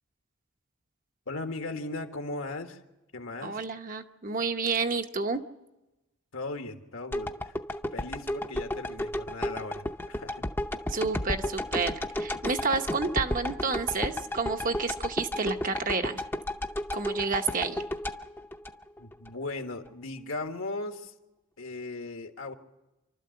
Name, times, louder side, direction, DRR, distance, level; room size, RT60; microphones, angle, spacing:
voice 1, 1.3-2.8 3.1-3.6 6.3-7.5 7.9-10.4 19.0-21.1 21.6-22.5, left 2 dB, 70° left, 5 dB, 1.6 m, -37 dB
voice 2, 3.4-5.4 10.9-16.2 16.9-17.8, right 4 dB, 40° right, 6 dB, 1.0 m, -30 dB
sound 1, 7.1-19.3 19.7-19.8, left 1 dB, 10° left, 0.7 m, -33 dB
27.0 x 12.5 x 7.8 m, 1.0 s
head